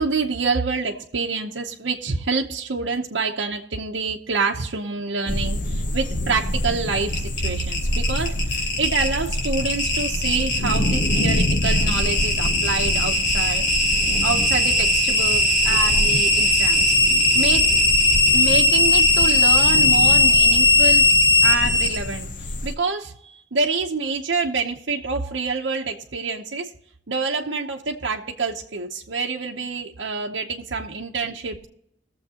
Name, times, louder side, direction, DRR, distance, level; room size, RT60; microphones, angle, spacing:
voice 1, 0.0-13.7 14.2-17.0 17.3-17.7 18.3-21.1 21.4-22.3 22.6-26.7 27.1-31.7, right 4 dB, 80° right, 0 dB, 0.8 m, -27 dB
sound 1, 5.3-22.8, left 1 dB, 45° left, 0.8 m, -27 dB
sound 2, 7.1-22.0, left 2 dB, 70° left, 3.0 m, -18 dB
21.0 x 7.2 x 2.9 m, 0.74 s
head